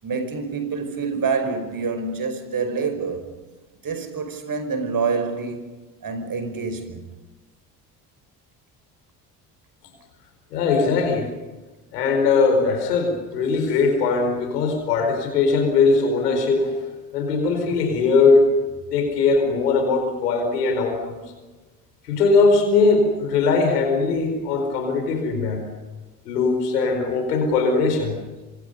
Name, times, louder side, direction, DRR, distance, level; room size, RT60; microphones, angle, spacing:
voice 1, 0.0-3.2 3.8-7.1, right 5 dB, 45° right, 5.4 m, -27 dB
voice 2, 10.5-11.3 11.9-16.8 17.1-18.5 18.9-21.2 22.0-25.6 26.2-28.2, left 4 dB, 90° left, 4.9 m, -20 dB
26.5 x 25.0 x 5.5 m
hypercardioid pair, 55°, 46 cm